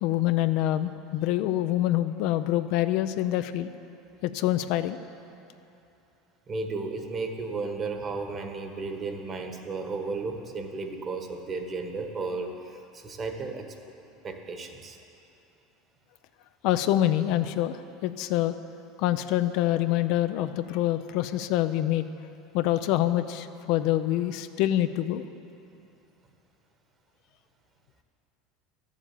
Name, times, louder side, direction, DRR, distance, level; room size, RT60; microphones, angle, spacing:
voice 1, 0.0-3.7 4.2-5.0 16.6-18.6 19.0-22.1 22.5-25.2, left 13 dB, 65° left, 10 dB, 0.5 m, -26 dB
voice 2, 6.5-13.7 14.2-15.0, right 3 dB, 35° right, 5 dB, 1.4 m, -34 dB
12.0 x 7.3 x 8.3 m, 2.7 s
supercardioid pair, 105°, 0 cm